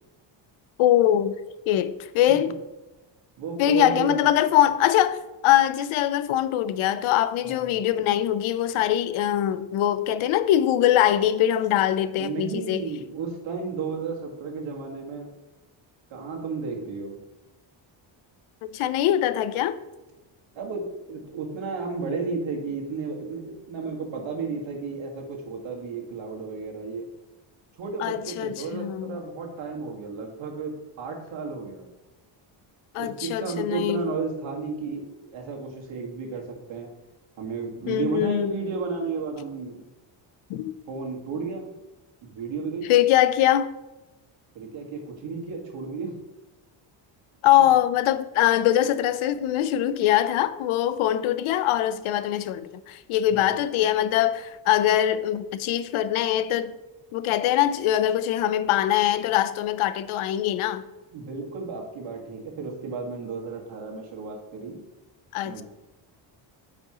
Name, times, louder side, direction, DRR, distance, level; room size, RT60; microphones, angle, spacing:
voice 1, 0.8-1.3 1.7-2.5 3.6-12.9 18.7-19.8 28.0-29.2 32.9-34.0 37.9-38.5 40.5-40.7 42.9-43.7 47.4-56.8 57.1-60.8 65.3-65.6, left 12 dB, 85° left, 0.7 m, -22 dB
voice 2, 3.4-4.2 7.4-7.7 12.2-15.3 16.1-17.2 20.5-27.1 27.7-31.9 33.0-36.9 37.4-39.8 40.9-41.7 42.2-42.9 44.5-46.1 53.4-53.5 61.1-64.8 65.4-65.6, right 4 dB, 65° right, 1.8 m, -33 dB
9.5 x 5.3 x 2.9 m
cardioid pair, 170°, 48 cm